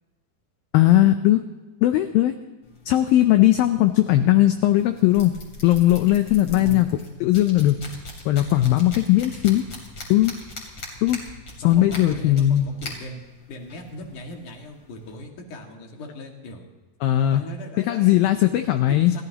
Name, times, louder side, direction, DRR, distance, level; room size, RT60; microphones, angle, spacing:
voice 1, 0.7-1.4 1.8-2.4 2.9-5.3 5.6-6.9 7.2-7.8 8.3-9.7 10.1-10.3 11.0-11.2 11.6-12.7 17.0-17.4 17.8-19.1, left 14 dB, 85° left, 8 dB, 2.1 m, -18 dB
sound 1, 2.6-15.2, left 2 dB, 35° left, 3.8 m, -42 dB
voice 2, 6.5-6.9 11.6-13.2 13.5-16.7 17.3-19.2, left 1 dB, 55° left, 1 dB, 3.1 m, -38 dB
29.5 x 14.5 x 2.9 m, 1.2 s
omnidirectional pair, 4.9 m